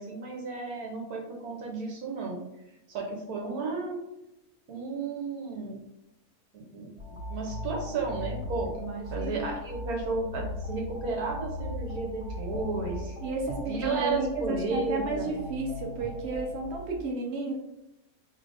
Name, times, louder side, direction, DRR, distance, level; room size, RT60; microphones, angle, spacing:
voice 1, 0.0-2.4 2.9-4.0 4.7-5.8 6.5-6.9 7.3-8.7 9.1-13.2 13.7-15.3, right 4 dB, 70° right, 1 dB, 1.3 m, -33 dB
sound 1, 7.0-16.9, left 1 dB, 35° right, 1.5 m, -38 dB
voice 2, 8.8-9.5 13.2-17.5, right 2 dB, 55° right, 0 dB, 0.8 m, -33 dB
4.8 x 3.2 x 2.5 m, 0.89 s
omnidirectional pair, 1.7 m